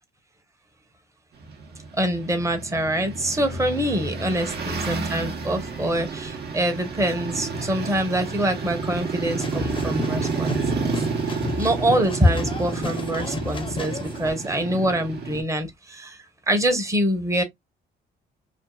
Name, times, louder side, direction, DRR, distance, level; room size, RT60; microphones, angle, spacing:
sound 1, 1.4-15.4, right 5 dB, 55° right, 0.9 m, -30 dB
voice 1, 2.0-10.9 11.6-16.2 16.5-17.4, right 1 dB, 15° right, 0.9 m, -25 dB
sound 2, 9.3-14.3, left 3 dB, 25° left, 0.7 m, -32 dB
2.6 x 2.5 x 2.2 m
cardioid pair, 90°, 20 cm